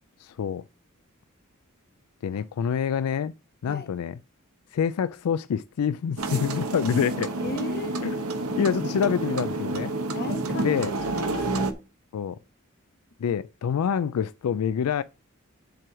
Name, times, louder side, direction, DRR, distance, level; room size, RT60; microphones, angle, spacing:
voice 1, 0.2-0.7 2.2-3.3 3.6-4.2 4.7-7.3 8.0-8.2 8.6-9.9 10.6-10.9 12.1-12.4 13.2-15.0, left 7 dB, 90° left, 0.3 m, -26 dB
sound 1, 6.2-11.7, right 2 dB, 85° right, 1.2 m, -29 dB
voice 2, 7.4-8.0 10.1-11.7, left 1 dB, 50° left, 1.3 m, -36 dB
7.7 x 4.6 x 6.1 m
head